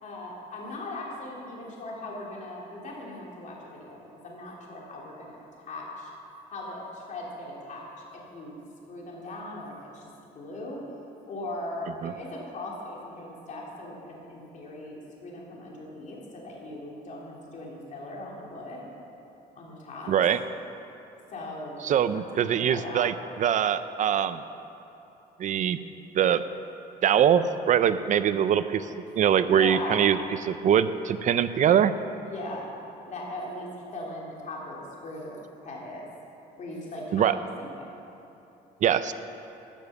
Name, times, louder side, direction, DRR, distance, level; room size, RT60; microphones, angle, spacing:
voice 1, 0.0-4.0 4.2-6.1 6.5-7.9 8.1-8.6 8.9-10.8 11.3-18.9 19.6-20.1 21.3-23.1 29.6-30.0 32.3-32.7 33.0-34.8 35.0-36.1 36.6-37.9, left 1 dB, 45° left, -3 dB, 2.9 m, -39 dB
voice 2, 20.1-20.4 21.8-24.4 25.4-25.8 26.1-26.4 27.0-28.9 29.2-30.2 30.4-31.9 37.1-37.3 38.8-39.1, right 9 dB, 50° right, 13 dB, 0.5 m, -23 dB
13.5 x 7.1 x 6.8 m, 3.0 s
cardioid pair, 110°, 17 cm